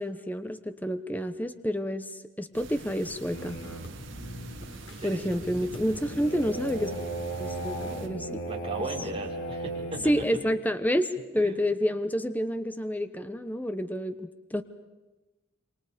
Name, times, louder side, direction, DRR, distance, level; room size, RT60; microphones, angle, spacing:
voice 1, 0.0-3.6 5.0-6.9 7.4-8.4 10.0-11.1 11.3-14.6, equal, 10° left, 10 dB, 1.0 m, -29 dB
sound 1, 2.5-8.1, right 2 dB, 65° right, 2.2 m, -45 dB
sound 2, 3.3-10.3, right 2 dB, 85° left, 4.5 m, -37 dB
voice 2, 4.8-5.7 8.4-10.0 11.4-11.6, right 2 dB, 30° right, 0 dB, 5.3 m, -38 dB
28.0 x 25.0 x 5.2 m, 1.1 s
head